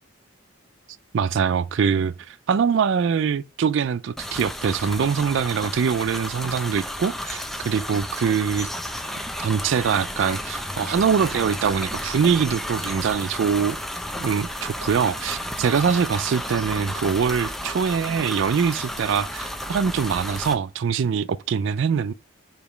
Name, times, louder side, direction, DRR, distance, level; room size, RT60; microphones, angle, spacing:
voice 1, 1.1-8.7 9.4-13.8 14.2-22.1, right 6 dB, 60° right, 0.3 m, -23 dB
sound 1, 4.2-20.5, equal, ahead, 0.7 m, -32 dB
5.1 x 5.0 x 6.2 m
head